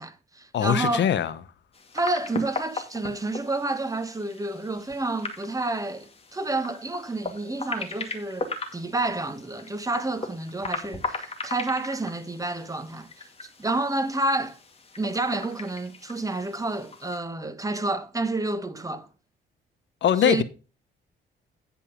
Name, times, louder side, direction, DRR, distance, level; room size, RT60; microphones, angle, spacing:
voice 1, 0.0-1.1 1.9-14.6 15.0-19.1 20.2-20.4, right 2 dB, 15° right, 1.3 m, -29 dB
voice 2, 0.5-1.3 20.0-20.4, left 9 dB, 65° left, 1.0 m, -22 dB
sound 1, 1.7-17.2, left 3 dB, 30° left, 2.3 m, -38 dB
10.0 x 5.4 x 5.2 m
cardioid pair, 90°, 20 cm